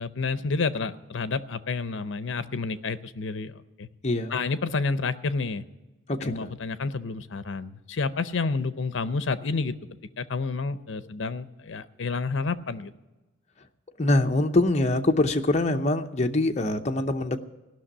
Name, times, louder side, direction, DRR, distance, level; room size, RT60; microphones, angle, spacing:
voice 1, 0.0-3.9 4.3-5.6 6.2-9.8 10.2-12.9, left 4 dB, 70° left, 13 dB, 0.6 m, -29 dB
voice 2, 4.0-4.4 6.1-6.5 14.0-17.4, left 2 dB, 35° left, 4 dB, 0.7 m, -24 dB
16.5 x 6.1 x 9.9 m, 1.1 s
head